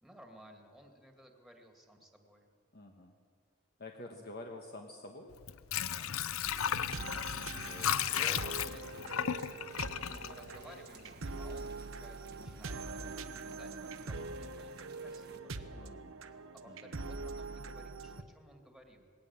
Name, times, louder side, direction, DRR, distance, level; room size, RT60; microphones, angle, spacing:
voice 1, 0.0-2.5 5.9-6.3 8.1-15.9 16.2-19.1, equal, ahead, 3 dB, 2.2 m, -57 dB
voice 2, 2.7-3.1 3.8-5.4 7.6-8.5 15.8-16.1 16.7-17.0, left 1 dB, 50° left, 2 dB, 1.4 m, -48 dB
Water / Sink (filling or washing), 5.3-11.2 11.6-11.7, left 9 dB, 85° left, 0.6 m, -35 dB
sound 1, 6.4-18.2, right 3 dB, 75° right, 1.0 m, -43 dB
sound 2, 8.7-15.4, right 4 dB, 50° right, 1.1 m, -58 dB
20.0 x 17.5 x 7.3 m, 2.2 s
head